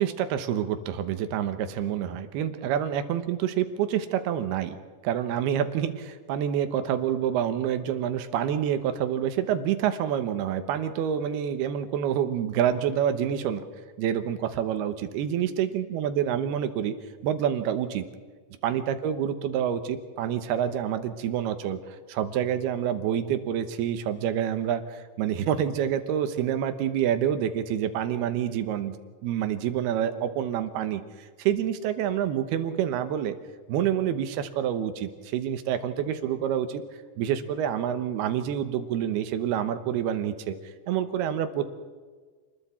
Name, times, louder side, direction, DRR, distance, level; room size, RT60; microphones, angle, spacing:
voice 1, 0.0-4.8 5.0-13.6 14.0-16.9 17.2-18.1 18.6-28.9 29.2-31.0 31.4-33.4 33.7-36.8 37.2-40.5 40.9-41.7, right 9 dB, 70° right, 9 dB, 2.7 m, -27 dB
29.0 x 21.0 x 4.4 m, 1.5 s
omnidirectional pair, 5.4 m